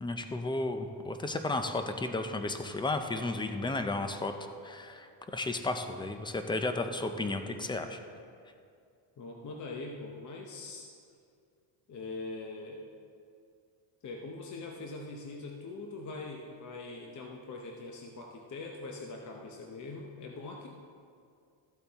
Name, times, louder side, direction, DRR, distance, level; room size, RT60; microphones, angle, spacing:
voice 1, 0.0-4.3 4.6-8.0, left 2 dB, 10° left, 7 dB, 0.3 m, -33 dB
voice 2, 9.2-10.9 11.9-12.8 14.0-20.8, left 3 dB, 35° left, 1 dB, 0.8 m, -42 dB
13.5 x 8.1 x 3.5 m, 2.3 s
cardioid pair, 135°, 49 cm